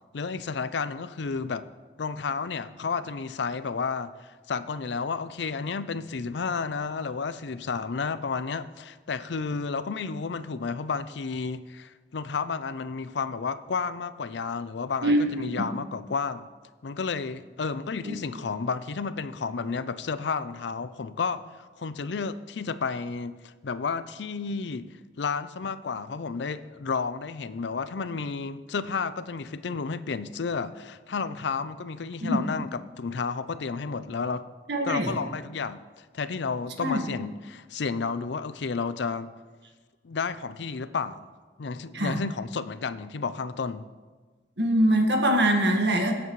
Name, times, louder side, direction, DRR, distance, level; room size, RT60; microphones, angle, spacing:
voice 1, 0.1-1.7 2.0-16.5 16.8-24.9 25.2-34.4 34.8-39.3 40.0-41.3 41.6-43.9, left 5 dB, 70° left, 14 dB, 0.5 m, -31 dB
voice 2, 15.0-15.7 18.0-18.1 32.2-32.4 34.7-35.1 36.8-37.0 41.9-42.2 44.6-46.1, right 1 dB, 65° right, 2 dB, 1.7 m, -23 dB
20.5 x 8.2 x 3.2 m, 1.4 s
head